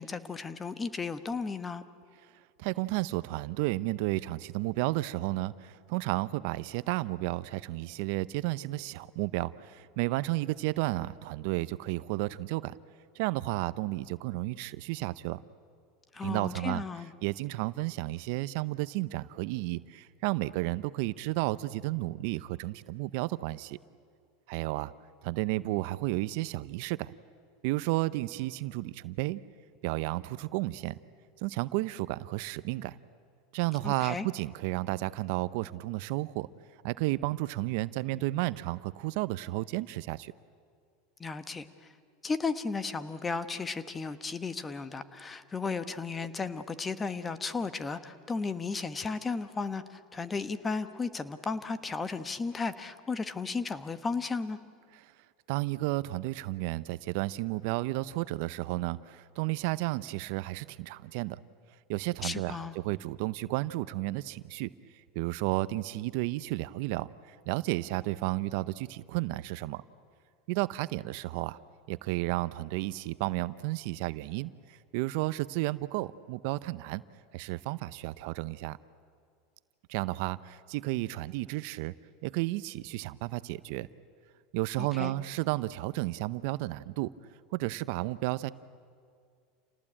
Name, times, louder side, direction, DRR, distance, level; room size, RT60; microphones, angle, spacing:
voice 1, 0.0-1.8 16.1-17.1 33.8-34.3 41.2-41.7 42.2-54.6 62.2-62.7 84.8-85.1, left 4 dB, 20° left, 12 dB, 1.3 m, -34 dB
voice 2, 2.6-12.7 13.1-15.4 16.2-16.8 17.2-23.8 24.5-24.9 25.2-27.1 27.6-29.4 29.8-30.9 31.4-33.0 33.5-36.5 36.8-40.3 55.5-61.4 61.9-64.7 65.1-69.8 70.5-71.6 71.9-77.0 77.3-78.8 79.9-81.9 82.2-83.9 84.5-87.1 87.5-88.5, right 19 dB, 65° right, 17 dB, 0.6 m, -32 dB
28.0 x 19.0 x 8.8 m, 2.2 s
supercardioid pair, 110°, 0 cm